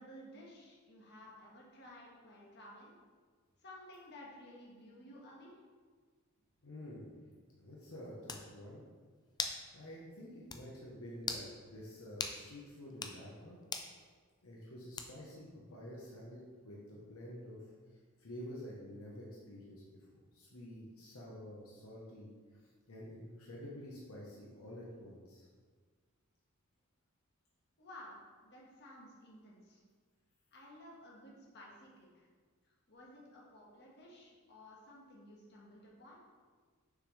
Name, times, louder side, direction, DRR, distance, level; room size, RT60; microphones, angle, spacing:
voice 1, 0.0-2.9 3.6-5.5 27.8-28.2 28.4-29.8 30.5-32.3 32.6-36.2, left 1 dB, 50° left, -4 dB, 1.6 m, -55 dB
voice 2, 6.6-7.2 7.5-8.8 9.7-13.6 14.4-19.8 20.3-22.3 22.9-25.5, equal, 75° left, -4 dB, 1.1 m, -49 dB
sound 1, 7.8-7.9 8.3-8.5 9.4-9.6 10.0-10.1 10.5-10.6 11.2-11.5 12.2-12.4 12.9-13.2 13.7-13.9 15.0-15.3, left 4 dB, 20° left, 0.4 m, -39 dB
6.6 x 5.8 x 3.3 m, 1.5 s
head